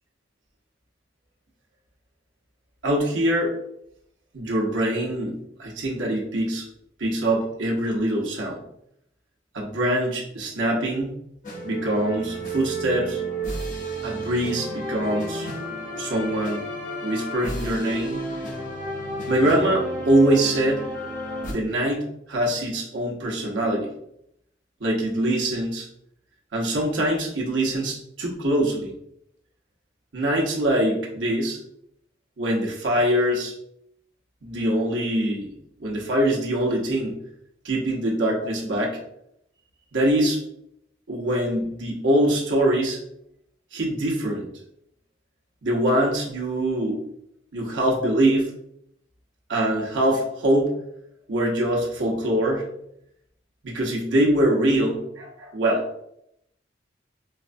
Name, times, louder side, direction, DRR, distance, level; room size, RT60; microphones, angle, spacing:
voice 1, 2.8-3.5 4.3-6.7 7.0-8.6 9.5-11.2 11.6-13.2 14.0-15.5 15.9-16.6 17.0-18.2 19.3-20.8 21.5-23.9 24.8-25.9 26.5-28.9 30.1-31.6 32.4-33.5 34.4-35.5 35.8-37.2 37.6-39.0 39.9-40.4 41.1-43.0 43.7-44.5 45.6-47.0 47.5-48.5 49.5-50.7 51.3-52.6 53.6-55.8, right 1 dB, 85° right, -2 dB, 0.9 m, -23 dB
sound 1, 11.4-21.5, right 1 dB, 45° left, 0.9 m, -31 dB
4.4 x 2.2 x 2.5 m, 0.76 s
head